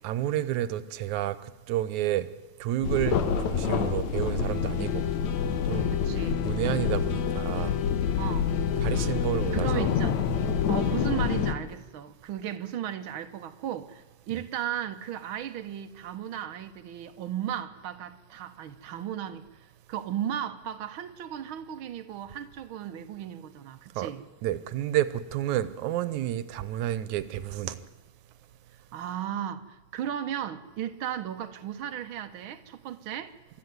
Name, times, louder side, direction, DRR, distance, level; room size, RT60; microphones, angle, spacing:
voice 1, 0.0-2.3 2.6-3.2 3.5-5.1 5.7-5.9 6.4-7.8 8.8-9.9 24.0-24.1 24.4-27.8, right 12 dB, 85° right, 2.3 m, -30 dB
sound 1, 2.8-11.5, left 7 dB, 75° left, 2.7 m, -27 dB
voice 2, 5.9-6.5 8.2-8.5 8.8-9.2 9.5-10.2 10.7-19.4 19.9-24.3 28.9-33.3, right 10 dB, 60° right, 1.4 m, -35 dB
24.0 x 13.5 x 9.6 m
omnidirectional pair, 3.3 m